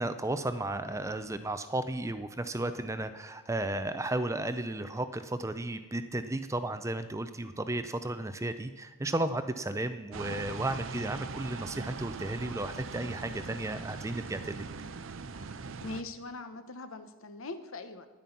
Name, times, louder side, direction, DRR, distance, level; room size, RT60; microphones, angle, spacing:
voice 1, 0.0-14.6 15.3-15.4, right 1 dB, 15° right, 11 dB, 0.5 m, -34 dB
sound 1, 10.1-16.0, right 4 dB, 60° right, 0.6 m, -41 dB
voice 2, 15.8-18.1, left 2 dB, 70° left, 10 dB, 1.0 m, -42 dB
11.0 x 9.1 x 5.8 m, 1.4 s
head